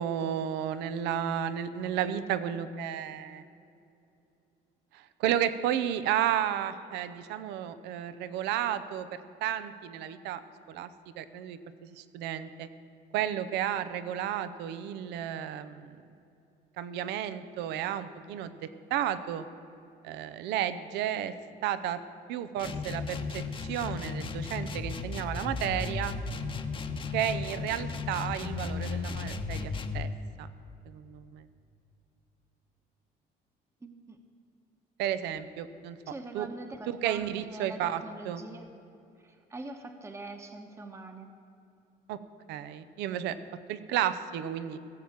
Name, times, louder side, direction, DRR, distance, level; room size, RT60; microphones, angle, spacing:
voice 1, 0.0-3.4 4.9-10.4 10.7-10.9 11.2-11.6 11.9-12.7 13.1-16.0 16.8-18.6 18.9-19.5 20.0-21.3 21.6-22.0 22.3-26.1 27.1-30.1 30.4-30.5 30.9-31.5 35.0-36.0 36.3-36.5 36.9-38.4 42.1-42.2 42.5-43.4 43.7-44.8, right 10 dB, 90° right, 13 dB, 0.7 m, -32 dB
sound 1, 22.6-30.1, left 4 dB, 30° left, 0.9 m, -35 dB
voice 2, 33.8-34.2 36.1-38.7 39.2-41.3, right 2 dB, 15° right, 5 dB, 1.0 m, -43 dB
16.5 x 7.6 x 7.2 m, 2.7 s
cardioid pair, 110°, 17 cm